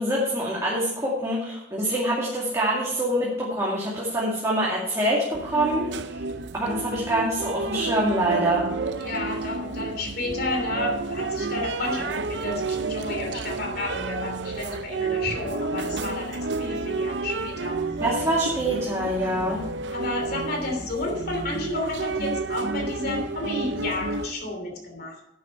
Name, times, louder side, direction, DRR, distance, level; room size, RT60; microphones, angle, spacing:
voice 1, 0.0-5.9 6.5-8.6 18.0-19.6, right 1 dB, 15° right, -6 dB, 2.3 m, -25 dB
sound 1, 5.3-24.3, right 3 dB, 85° right, 0.7 m, -31 dB
voice 2, 9.0-18.0 19.3-19.4 19.9-25.2, left 2 dB, 60° left, 2 dB, 3.0 m, -31 dB
11.0 x 8.7 x 4.5 m, 0.84 s
head